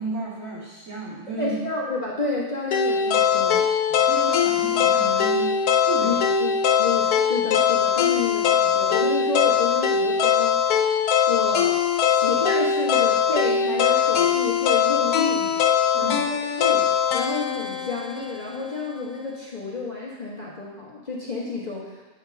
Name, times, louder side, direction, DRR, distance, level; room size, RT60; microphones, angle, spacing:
voice 1, 0.0-1.6 3.9-5.5 5.8-6.2 15.9-16.2, right 3 dB, 60° right, -7 dB, 2.5 m, -33 dB
voice 2, 1.4-3.6 6.0-6.5 6.8-10.6 11.3-15.5 15.9-16.8 17.1-21.9, left 3 dB, 30° left, -5 dB, 1.2 m, -30 dB
sound 1, 2.7-18.8, left 7 dB, 85° left, 1.2 m, -21 dB
8.8 x 3.7 x 5.6 m, 1.2 s
omnidirectional pair, 1.6 m